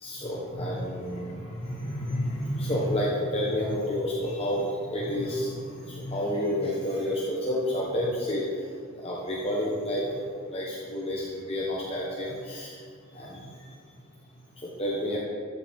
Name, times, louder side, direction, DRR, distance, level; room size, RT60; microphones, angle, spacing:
voice 1, 0.0-8.4 9.0-12.8 13.1-13.4 14.6-15.2, left 1 dB, 25° left, -4 dB, 1.2 m, -30 dB
14.0 x 8.1 x 3.6 m, 2.1 s
head